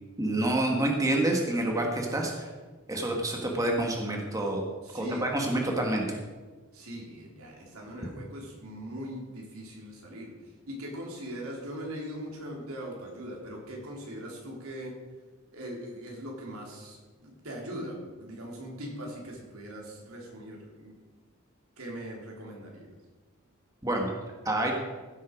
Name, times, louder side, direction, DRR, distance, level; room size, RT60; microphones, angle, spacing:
voice 1, 0.2-2.5 2.9-4.6 4.9-6.2 23.8-24.1 24.4-24.7, right 1 dB, 15° right, 0 dB, 1.5 m, -28 dB
voice 2, 4.8-5.7 6.7-10.3 10.7-15.0 15.5-21.0 21.8-22.9, equal, 85° right, -1 dB, 3.3 m, -40 dB
15.5 x 7.8 x 5.1 m, 1.4 s
head